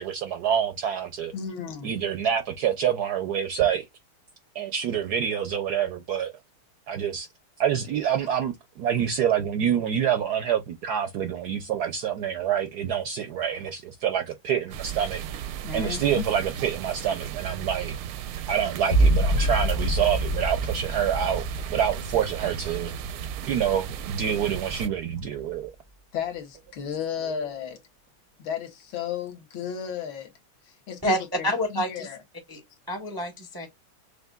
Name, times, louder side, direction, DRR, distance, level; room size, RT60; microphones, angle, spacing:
voice 1, 0.0-1.3 1.8-3.8 4.5-6.3 6.9-7.3 7.6-15.2 15.7-17.9 18.5-21.4 21.7-22.9 23.5-25.7, right 8 dB, 70° right, 0.9 m, -26 dB
voice 2, 1.3-1.9 15.6-16.3 26.1-27.8 28.4-30.3 30.9-31.5 31.7-32.2, left 8 dB, 75° left, 1.8 m, -33 dB
sound 1, 14.7-24.9, right 10 dB, 85° right, 1.6 m, -35 dB
sound 2, 18.9-24.3 24.8-25.4, right 1 dB, 50° left, 0.7 m, -27 dB
voice 3, 31.4-32.1 32.5-32.6 32.9-33.7, equal, 25° right, 0.5 m, -27 dB
6.5 x 2.6 x 2.3 m
omnidirectional pair, 2.3 m